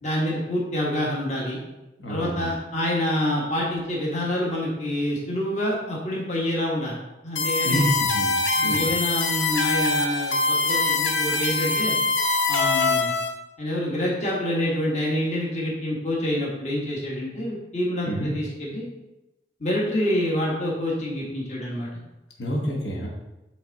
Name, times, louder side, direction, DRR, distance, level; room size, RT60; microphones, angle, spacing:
voice 1, 0.0-1.6 2.1-7.0 7.2-7.9 8.5-11.9 12.5-13.1 13.6-18.9 19.6-21.9, left 1 dB, 40° left, -4 dB, 1.5 m, -27 dB
voice 2, 2.0-2.5 7.6-8.3 8.6-8.9 18.1-18.3 22.4-23.1, equal, 70° left, -3 dB, 1.4 m, -27 dB
sound 1, 7.4-13.3, left 3 dB, 85° left, 0.9 m, -23 dB
9.2 x 3.5 x 4.0 m, 0.98 s
head